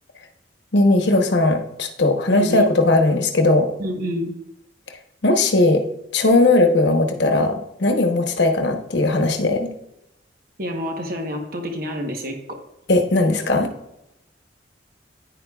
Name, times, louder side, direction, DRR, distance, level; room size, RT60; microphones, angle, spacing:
voice 1, 0.7-3.7 5.2-5.8 6.1-9.7 12.9-13.7, left 2 dB, 70° left, 4 dB, 1.0 m, -18 dB
voice 2, 2.3-2.7 3.8-4.3 10.6-12.6, equal, 50° right, 3 dB, 1.1 m, -28 dB
9.8 x 9.7 x 2.4 m, 0.86 s
head